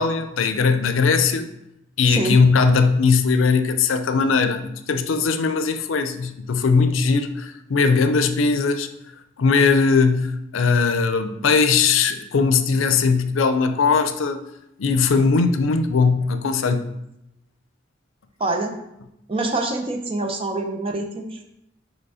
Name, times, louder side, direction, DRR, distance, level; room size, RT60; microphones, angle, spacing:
voice 1, 0.0-1.5 2.0-8.9 9.4-14.4 14.8-16.9, left 4 dB, 90° left, 0.5 m, -19 dB
voice 2, 2.1-2.4 18.4-18.7 19.3-21.4, right 2 dB, 30° right, 0.7 m, -25 dB
5.1 x 4.5 x 4.8 m
head